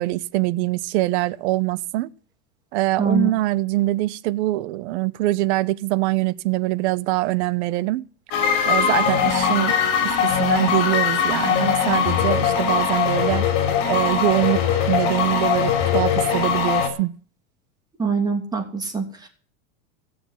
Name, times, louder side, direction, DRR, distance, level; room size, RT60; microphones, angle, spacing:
voice 1, 0.0-2.1 2.7-8.0 8.6-13.4 13.9-17.1, right 18 dB, 65° right, 0.9 m, -23 dB
voice 2, 3.0-3.3 18.0-19.3, right 4 dB, 10° right, 2.7 m, -23 dB
sound 1, 8.3-16.9, left 7 dB, 60° left, 4.7 m, -21 dB
16.5 x 7.0 x 8.4 m
supercardioid pair, 155°, 36 cm